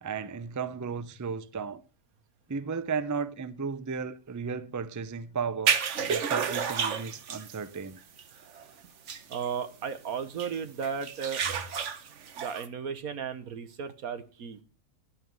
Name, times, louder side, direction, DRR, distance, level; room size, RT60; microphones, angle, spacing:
voice 1, 0.0-1.8 2.5-5.8 6.1-8.0, right 5 dB, 25° right, 0.4 m, -34 dB
sound 1, 5.7-7.6 8.0-8.2 8.6-8.7 9.1-9.5 10.4-10.5 10.8-12.7, right 7 dB, 60° right, 1.3 m, -30 dB
voice 2, 9.3-11.4 12.3-14.6, right 6 dB, 90° right, 1.6 m, -35 dB
11.5 x 9.4 x 5.4 m
omnidirectional pair, 1.5 m